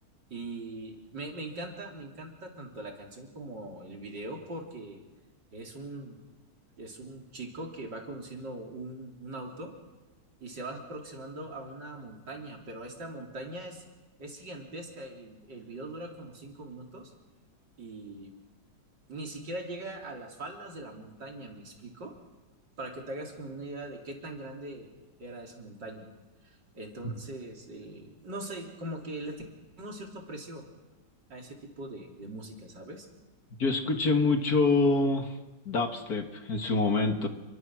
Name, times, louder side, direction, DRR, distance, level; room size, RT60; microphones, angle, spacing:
voice 1, 0.3-5.0 5.5-6.2 6.8-9.7 10.4-13.8 14.2-17.1 17.8-18.3 19.1-22.2 22.8-24.9 25.2-26.1 26.4-29.4 29.8-30.7 31.3-33.1, right 2 dB, 80° right, 1 dB, 4.2 m, -41 dB
voice 2, 33.6-35.4 35.7-37.3, left 3 dB, 60° left, 5 dB, 2.4 m, -26 dB
29.0 x 23.0 x 6.3 m, 1.1 s
omnidirectional pair, 1.9 m